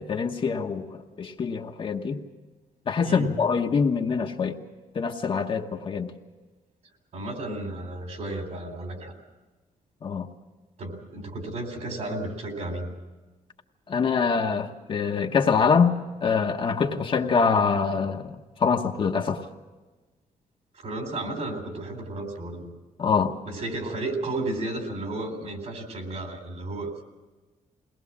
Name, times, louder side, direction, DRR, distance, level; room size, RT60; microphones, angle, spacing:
voice 1, 0.0-2.2 2.9-4.6 4.9-6.1 10.0-10.3 13.9-15.9 16.2-18.3 18.6-19.4 23.0-23.3, left 5 dB, 40° left, 3 dB, 1.1 m, -24 dB
voice 2, 7.1-9.1 10.8-12.9 20.7-22.7 23.4-27.1, right 2 dB, 55° right, 5 dB, 3.8 m, -33 dB
22.0 x 19.0 x 7.3 m, 1.2 s
wide cardioid pair, 175°, 14 cm